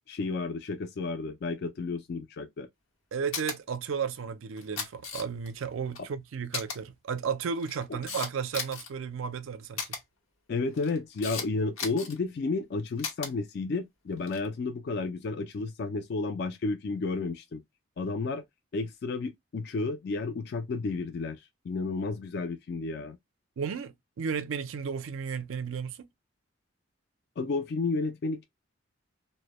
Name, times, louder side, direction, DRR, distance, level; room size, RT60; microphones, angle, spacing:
voice 1, 0.1-2.7 10.5-17.6 18.0-18.4 18.7-23.2 27.4-28.5, left 3 dB, 50° left, 0.3 m, -32 dB
voice 2, 3.1-10.0 23.6-26.1, right 6 dB, 80° right, 0.4 m, -34 dB
Camera, 3.3-3.6 4.6-5.5 5.9-6.0 6.5-6.8 7.5-8.9 9.8-10.0 10.7-11.5 11.8-12.2 13.0-13.3 14.2-14.5, left 5 dB, 90° left, 0.9 m, -35 dB
2.1 x 2.1 x 2.9 m
head